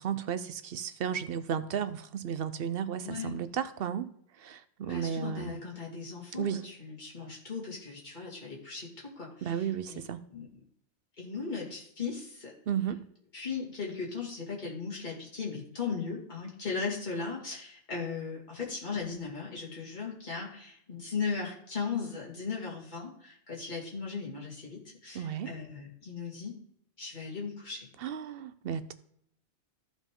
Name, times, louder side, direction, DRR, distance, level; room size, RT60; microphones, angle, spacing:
voice 1, 0.0-4.1 4.4-5.6 6.3-6.6 9.4-10.2 12.7-13.0 25.1-25.5 28.0-28.9, right 8 dB, 60° right, 0.8 m, -34 dB
voice 2, 3.0-3.4 4.8-10.0 10.3-10.5 11.2-12.5 13.3-26.5 27.0-27.9, left 5 dB, 40° left, 2.5 m, -37 dB
14.0 x 5.1 x 3.8 m
omnidirectional pair, 1.2 m